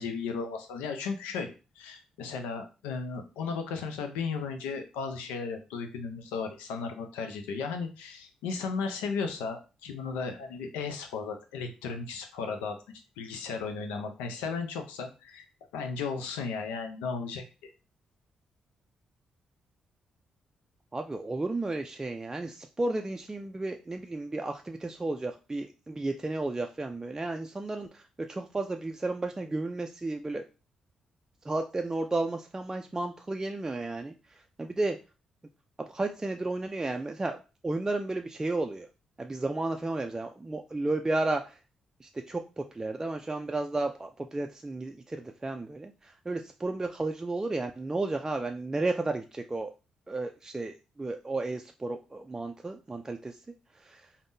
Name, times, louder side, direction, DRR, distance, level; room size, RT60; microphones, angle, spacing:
voice 1, 0.0-12.8 13.2-15.5 15.7-17.7, left 5 dB, 85° left, 5 dB, 0.5 m, -35 dB
voice 2, 20.9-30.4 31.5-34.1 34.6-35.0 35.8-37.4 37.6-38.9 39.2-41.5 42.0-49.7 50.1-53.4 53.8-54.0, right 2 dB, 20° right, 4 dB, 0.3 m, -33 dB
3.5 x 2.1 x 2.6 m, 0.31 s
hypercardioid pair, 45°, 2 cm